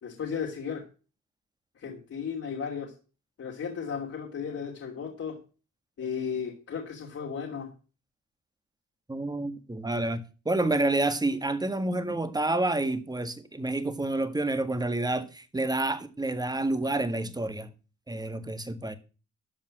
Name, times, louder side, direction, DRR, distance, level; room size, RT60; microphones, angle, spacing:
voice 1, 0.0-0.8 1.8-2.9 3.4-5.4 6.0-7.7, left 6 dB, 50° left, 2.9 m, -35 dB
voice 2, 9.1-17.7 18.1-19.0, right 2 dB, 15° right, 1.7 m, -29 dB
13.0 x 5.5 x 7.6 m
cardioid pair, 90°, 30 cm